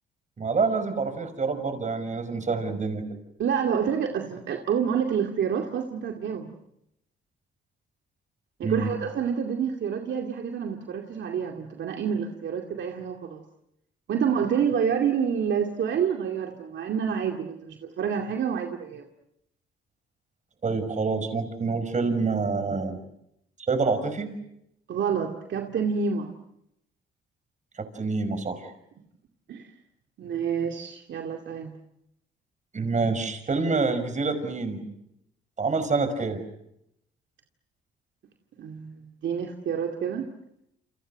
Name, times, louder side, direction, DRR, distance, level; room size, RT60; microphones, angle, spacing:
voice 1, 0.4-3.0 8.6-8.9 20.6-23.0 23.7-24.3 27.8-28.7 32.7-34.9 35.6-36.4, right 4 dB, 40° right, 10 dB, 5.7 m, -27 dB
voice 2, 3.4-6.5 8.6-13.4 14.1-19.1 24.9-26.3 29.5-29.7 30.2-31.7 38.6-40.3, right 7 dB, 65° right, 3 dB, 2.5 m, -28 dB
29.0 x 27.5 x 6.6 m, 0.79 s
cardioid pair, 90°, 20 cm